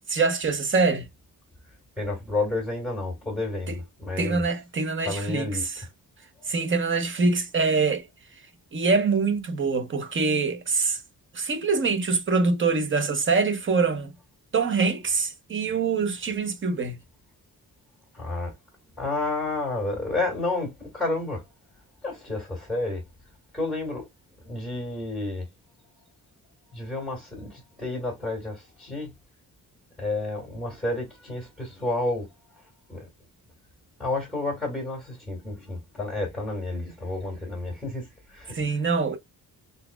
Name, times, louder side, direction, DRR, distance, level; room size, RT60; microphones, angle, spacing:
voice 1, 0.1-1.0 4.2-5.8 6.5-8.0 8.7-11.0 11.3-14.1 14.5-17.0 38.5-39.2, right 4 dB, 35° right, 0.9 m, -24 dB
voice 2, 2.0-4.5 5.0-5.7 6.4-6.6 18.1-18.5 19.0-21.4 22.0-23.0 23.5-24.1 24.4-25.5 26.7-29.1 30.0-32.3 32.6-33.1 34.0-38.9, left 2 dB, ahead, 2.0 m, -30 dB
4.1 x 4.0 x 2.2 m
wide cardioid pair, 180°, 35 cm